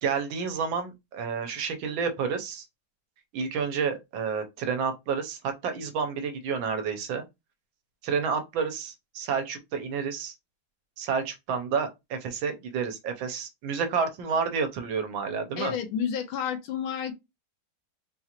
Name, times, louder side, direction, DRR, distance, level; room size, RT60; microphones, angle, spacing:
voice 1, 0.0-2.6 3.3-7.2 8.0-10.3 11.0-15.7, right 6 dB, 75° right, 1.5 m, -30 dB
voice 2, 15.6-17.1, left 8 dB, 85° left, 1.6 m, -30 dB
4.3 x 2.4 x 2.9 m
omnidirectional pair, 2.2 m